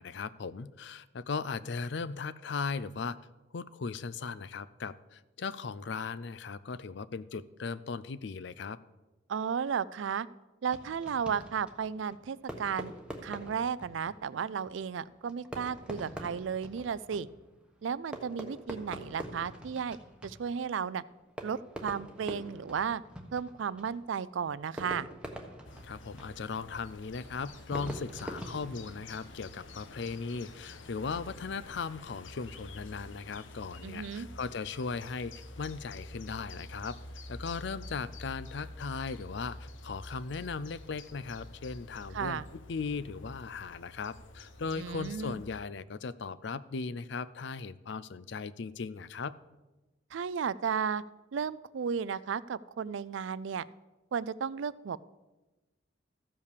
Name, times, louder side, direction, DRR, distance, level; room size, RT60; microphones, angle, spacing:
voice 1, 0.0-3.2 3.5-8.8 25.8-37.0 37.3-42.4 42.7-49.3, left 4 dB, 65° left, 17 dB, 0.5 m, -38 dB
voice 2, 9.3-10.3 10.6-12.9 13.2-17.3 17.8-20.0 20.2-21.0 21.4-23.0 23.3-25.1 33.8-34.3 42.1-42.5 44.8-45.4 50.1-51.0 51.3-53.7 54.1-55.0, right 7 dB, 75° right, 19 dB, 0.4 m, -34 dB
Fireworks, 10.6-29.5, equal, 5° right, 1.2 m, -46 dB
sound 1, 25.6-45.6, left 2 dB, 80° left, 1.0 m, -48 dB
14.0 x 5.6 x 6.8 m, 1.1 s
head